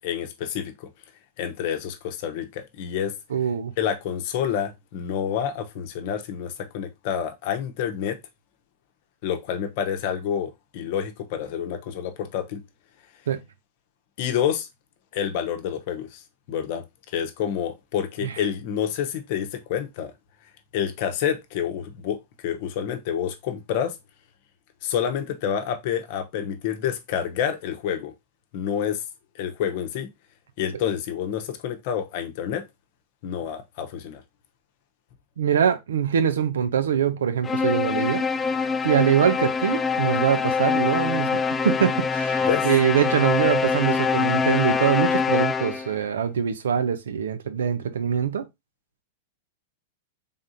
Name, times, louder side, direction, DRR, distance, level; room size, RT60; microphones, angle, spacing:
voice 1, 0.0-0.9 1.4-3.2 3.8-8.2 9.2-12.6 14.2-14.7 15.1-16.2 16.5-16.8 17.1-20.1 20.7-24.0 24.8-28.1 28.5-29.0 29.3-30.1 30.6-32.6 33.2-34.2 42.4-42.7, left 9 dB, 55° left, 0.8 m, -28 dB
voice 2, 3.3-3.7 13.3-13.4 18.2-18.3 35.4-38.2 38.8-48.5, right 8 dB, 80° right, 0.6 m, -23 dB
sound 1, 37.4-46.0, left 5 dB, 15° left, 0.3 m, -24 dB
3.7 x 3.6 x 2.7 m
hypercardioid pair, 110°, 0 cm